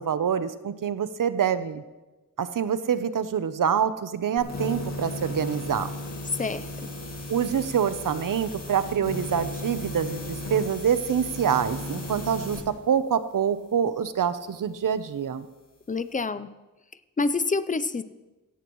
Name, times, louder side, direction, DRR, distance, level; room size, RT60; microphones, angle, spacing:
voice 1, 0.0-1.8 2.4-5.9 7.3-15.5, right 8 dB, 75° right, 12 dB, 0.8 m, -26 dB
sound 1, 4.4-12.6, left 1 dB, 50° left, 2.1 m, -35 dB
voice 2, 6.4-6.9 15.9-16.5 17.2-18.0, left 3 dB, 25° left, 13 dB, 0.5 m, -27 dB
17.0 x 14.5 x 3.1 m, 1.1 s
wide cardioid pair, 120°, 33 cm